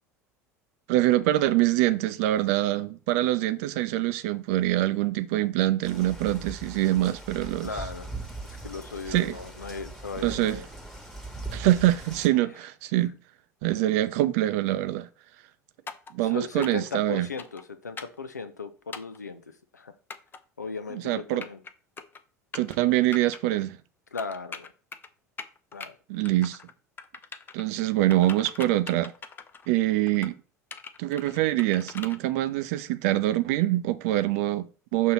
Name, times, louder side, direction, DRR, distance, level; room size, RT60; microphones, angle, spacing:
voice 1, 0.9-7.7 9.1-9.4 10.2-10.6 11.5-13.2 13.6-15.1 16.1-17.3 20.9-21.4 22.5-23.8 26.1-26.6 27.5-29.1 29.7-30.3 31.0-35.1, right 15 dB, 55° right, 0.5 m, -24 dB
sound 1, 5.8-12.3, right 2 dB, 5° left, 1.3 m, -40 dB
voice 2, 7.6-8.1 8.5-10.7 12.3-12.4 16.2-19.4 19.7-19.9 20.6-21.6 24.1-24.7 25.7-26.0, left 4 dB, 80° left, 0.6 m, -37 dB
sound 2, 15.9-16.1 16.6-16.9 17.4-17.6 18.0-18.2 18.9-19.2 20.1-20.4 21.2-21.7 22.0-22.2 22.5-22.8 23.1-23.4 24.2-25.1 25.4-25.9 26.2-26.7 27.0-27.6 28.1-29.7 30.1-30.3 30.7-32.2, left 5 dB, 25° left, 0.6 m, -41 dB
6.3 x 2.9 x 5.7 m
figure-of-eight pair, 70°, 9 cm